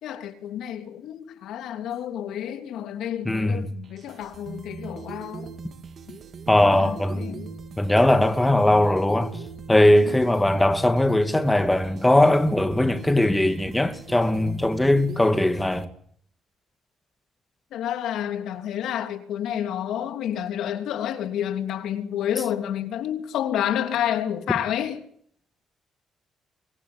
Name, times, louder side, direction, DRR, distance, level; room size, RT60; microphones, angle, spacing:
voice 1, 0.0-5.5 6.1-6.2 6.7-7.5 9.7-10.2 17.7-25.0, left 10 dB, 80° left, 3.0 m, -29 dB
voice 2, 3.3-3.7 6.5-7.4 7.8-9.3 9.7-15.9, left 1 dB, 10° left, 2.5 m, -20 dB
sound 1, 3.8-15.9, right 5 dB, 55° right, 3.0 m, -39 dB
25.0 x 22.0 x 9.8 m
cardioid pair, 90°, 0 cm